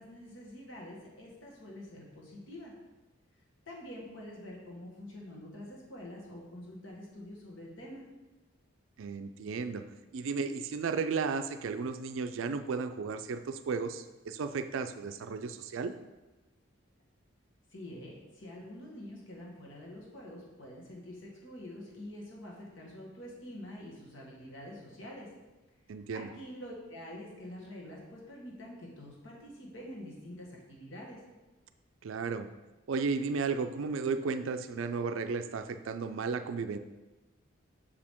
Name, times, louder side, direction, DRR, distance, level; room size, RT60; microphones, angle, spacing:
voice 1, 0.0-2.7 3.7-8.0 17.7-25.3 26.1-31.2, left 1 dB, 70° left, -3 dB, 1.6 m, -46 dB
voice 2, 9.0-9.8 10.1-15.9 25.9-26.3 32.0-32.5 32.9-36.8, right 4 dB, 75° right, 9 dB, 0.4 m, -34 dB
6.9 x 4.9 x 3.6 m, 1.2 s
head